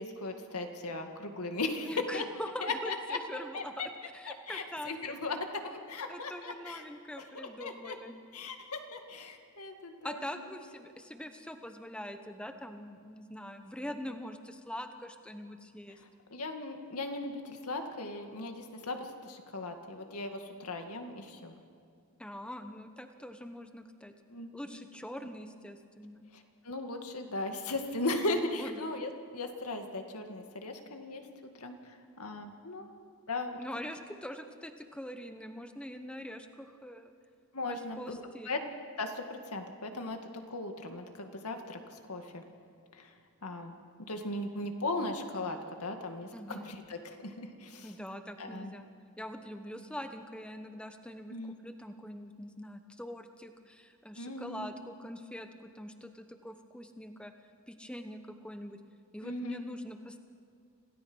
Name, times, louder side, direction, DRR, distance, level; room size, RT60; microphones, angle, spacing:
voice 1, 0.0-2.2 2.6-3.2 3.5-3.9 4.3-6.8 7.3-8.0 8.3-10.5 16.3-21.6 24.3-24.5 26.3-32.9 33.3-33.6 37.5-38.2 38.5-38.6 39.0-40.2 40.5-42.4 42.9-43.1 43.4-43.7 44.1-47.9 48.4-48.7 51.3-51.6 54.2-54.7 59.2-59.6, left 2 dB, 85° left, 5 dB, 2.1 m, -37 dB
voice 2, 1.8-5.3 6.1-8.1 10.0-16.0 22.2-24.1 24.5-26.3 28.6-28.8 33.6-37.1 37.7-38.5 46.3-46.7 47.8-48.9 49.2-57.3 57.7-58.8 59.1-60.2, equal, 5° left, 7 dB, 1.0 m, -43 dB
27.0 x 17.0 x 6.3 m, 2.3 s
head